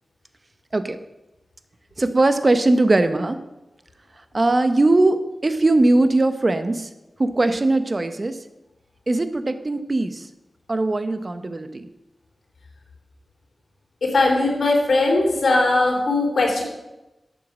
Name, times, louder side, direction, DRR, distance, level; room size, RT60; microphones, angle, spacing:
voice 1, 2.0-3.4 4.3-6.9 7.2-8.4 9.1-10.2 10.7-11.9, right 2 dB, 35° right, 10 dB, 1.0 m, -20 dB
voice 2, 14.0-16.6, left 2 dB, 80° left, 0 dB, 3.4 m, -19 dB
11.5 x 8.2 x 6.2 m, 0.98 s
wide cardioid pair, 95°, 0 cm